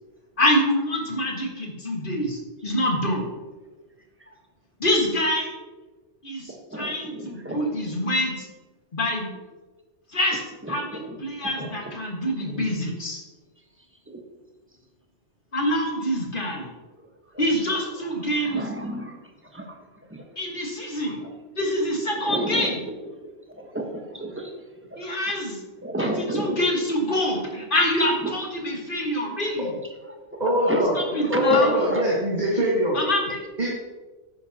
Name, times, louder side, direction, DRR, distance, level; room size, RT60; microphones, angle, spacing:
voice 1, 0.4-3.3 4.8-5.5 6.2-8.5 8.9-9.3 10.1-10.4 10.7-13.2 15.5-16.7 17.4-18.7 20.4-21.2 21.6-22.8 25.0-25.6 26.0-29.8 31.0-31.8 32.9-33.4, left 1 dB, 45° left, 0 dB, 1.9 m, -26 dB
voice 2, 6.7-7.6 10.6-11.2 11.4-11.9 12.5-12.6 14.1-14.2 17.0-17.1 17.3-17.4 18.2-19.2 19.5-19.8 20.1-20.2 21.0-21.3 22.1-23.3 23.6-24.5 24.9-25.0 25.8-26.6 28.2-28.3 30.6-32.1, right 1 dB, 10° right, 1 dB, 1.2 m, -31 dB
voice 3, 30.4-30.9 31.3-33.0 33.6-33.7, equal, 35° right, -6 dB, 2.1 m, -22 dB
10.5 x 9.7 x 2.9 m, 1.3 s
omnidirectional pair, 1.2 m